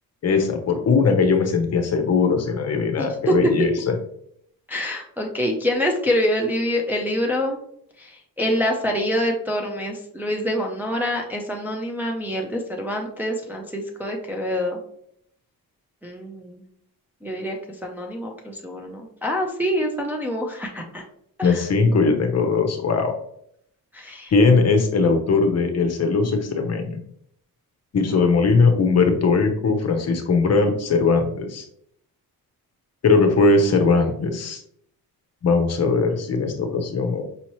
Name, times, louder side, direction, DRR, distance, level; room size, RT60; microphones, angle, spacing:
voice 1, 0.2-3.9 21.4-23.1 24.3-27.0 27.9-31.6 33.0-34.6 35.4-37.2, left 4 dB, 45° left, 5 dB, 0.7 m, -19 dB
voice 2, 3.0-3.5 4.7-7.6 8.0-14.8 16.0-16.6 17.2-21.0 21.4-21.6 23.9-24.3, equal, 5° right, 0 dB, 0.4 m, -26 dB
5.5 x 2.8 x 3.0 m, 0.69 s
wide cardioid pair, 160°, 37 cm